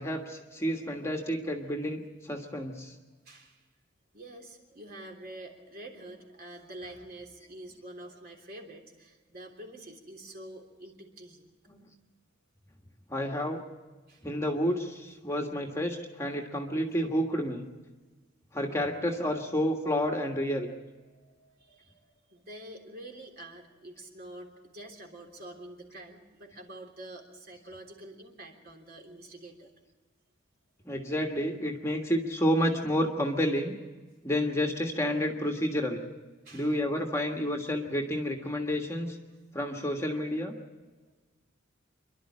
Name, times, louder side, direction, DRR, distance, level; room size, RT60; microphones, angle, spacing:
voice 1, 0.0-2.9 11.7-11.8 13.1-13.6 14.2-17.6 18.5-20.7 30.8-33.8 34.2-36.0 36.5-39.2 39.5-40.5, equal, 15° left, 2 dB, 1.5 m, -30 dB
voice 2, 3.2-3.6 4.1-11.6 14.1-14.3 21.0-29.9 36.4-36.8 40.8-41.2, right 1 dB, 50° right, 2 dB, 3.4 m, -47 dB
27.5 x 12.0 x 8.7 m, 1.3 s
head